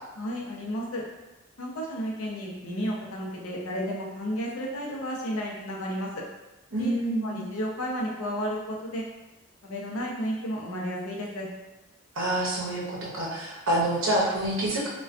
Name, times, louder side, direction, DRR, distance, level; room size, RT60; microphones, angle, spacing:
voice 1, 0.2-1.0 1.6-6.2 6.8-6.9 7.2-9.0 9.6-11.5, equal, 90° left, -2 dB, 0.5 m, -32 dB
voice 2, 6.7-7.4 12.2-14.9, right 1 dB, 65° right, -5 dB, 0.7 m, -27 dB
2.3 x 2.2 x 2.4 m, 1.0 s
head